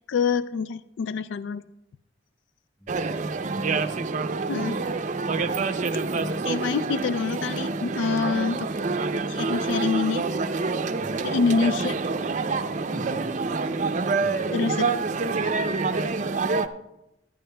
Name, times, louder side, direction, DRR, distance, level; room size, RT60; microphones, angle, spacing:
voice 1, 0.1-1.7 4.5-4.8 6.4-8.7 9.3-10.2 11.2-11.9 14.5-14.9 15.3-15.4, left 5 dB, 80° left, 14 dB, 0.3 m, -26 dB
voice 2, 2.8-3.7 11.0-11.4 12.9-13.4 14.2-14.5, equal, 15° left, 1 dB, 2.9 m, -43 dB
sound 1, 2.9-16.7, right 4 dB, 40° right, 0.5 m, -27 dB
20.0 x 11.0 x 2.2 m, 0.88 s
head